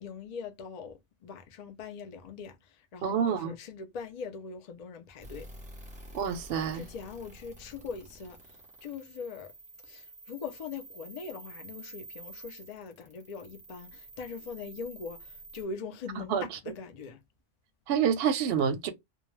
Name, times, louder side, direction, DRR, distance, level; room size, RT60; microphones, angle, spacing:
voice 1, 0.0-5.5 6.7-9.5 9.8-17.2, left 5 dB, 60° left, 0.4 m, -42 dB
voice 2, 3.0-3.5 6.1-6.9 16.2-16.5 17.9-18.9, right 7 dB, 65° right, 0.7 m, -28 dB
sound 1, 5.2-15.6, right 2 dB, 5° right, 0.7 m, -49 dB
2.3 x 2.1 x 3.0 m
omnidirectional pair, 1.3 m